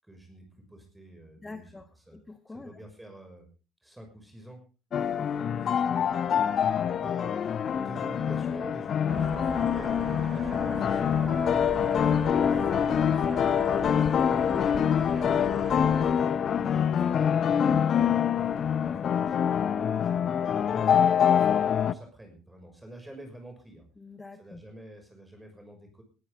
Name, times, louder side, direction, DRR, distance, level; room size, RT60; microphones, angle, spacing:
voice 1, 0.0-1.8 2.1-2.2 2.5-3.5 3.8-4.6 5.5-5.6 6.0-7.4 7.7-15.6 16.0-18.3 18.7-23.9 24.4-26.0, right 1 dB, 10° right, 4 dB, 6.2 m, -48 dB
voice 2, 1.4-2.8 4.9-5.3 11.7-11.8 15.9-16.2 24.0-24.6, left 3 dB, 15° left, 8 dB, 1.5 m, -46 dB
sound 1, 4.9-21.9, left 8 dB, 45° left, 0.8 m, -25 dB
sound 2, 9.1-16.1, right 6 dB, 40° right, 1.5 m, -40 dB
20.0 x 14.0 x 3.8 m, 0.35 s
figure-of-eight pair, 55°, 0 cm